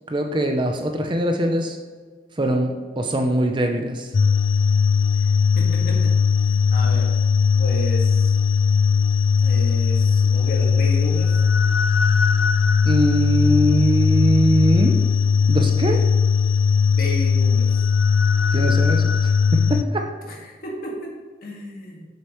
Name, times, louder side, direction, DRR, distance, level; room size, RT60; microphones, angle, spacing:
voice 1, 0.1-1.8 2.4-4.1 12.9-15.0 15.5-16.0 18.5-20.1, right 1 dB, 25° right, 3 dB, 0.6 m, -22 dB
sound 1, 4.1-19.8, left 6 dB, 85° left, 0.5 m, -18 dB
voice 2, 5.6-7.2 7.5-8.4 9.4-11.4 16.9-17.8 20.3-22.1, equal, 50° left, -2 dB, 1.8 m, -33 dB
8.7 x 6.5 x 3.1 m, 1.5 s
head